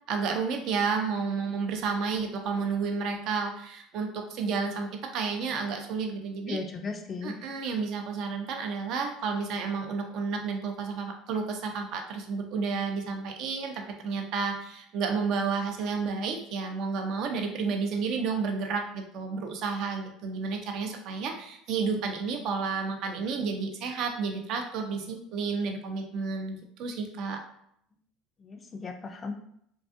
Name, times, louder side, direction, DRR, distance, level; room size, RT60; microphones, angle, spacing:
voice 1, 0.1-6.6 7.2-27.4, right 5 dB, 60° right, 4 dB, 0.5 m, -31 dB
voice 2, 6.5-7.4 28.4-29.3, left 4 dB, 30° left, 4 dB, 0.3 m, -36 dB
2.5 x 2.3 x 2.6 m, 0.70 s
supercardioid pair, 95°, 0 cm